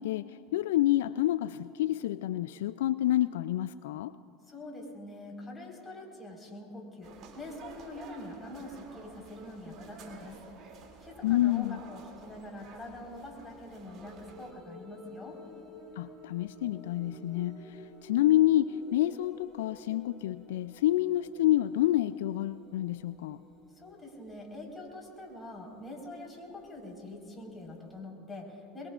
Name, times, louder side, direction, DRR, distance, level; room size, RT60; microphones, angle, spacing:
voice 1, 0.0-4.1 11.2-11.8 16.0-23.4, left 14 dB, 80° left, 15 dB, 0.3 m, -28 dB
voice 2, 4.5-15.4 23.7-28.9, left 1 dB, 15° left, -1 dB, 4.3 m, -45 dB
sound 1, 7.0-14.5, right 5 dB, 50° right, 2.6 m, -52 dB
sound 2, 11.4-11.6 13.5-28.0, left 1 dB, ahead, 3.4 m, -53 dB
23.0 x 22.0 x 2.4 m, 2.8 s
hypercardioid pair, 95°, 0 cm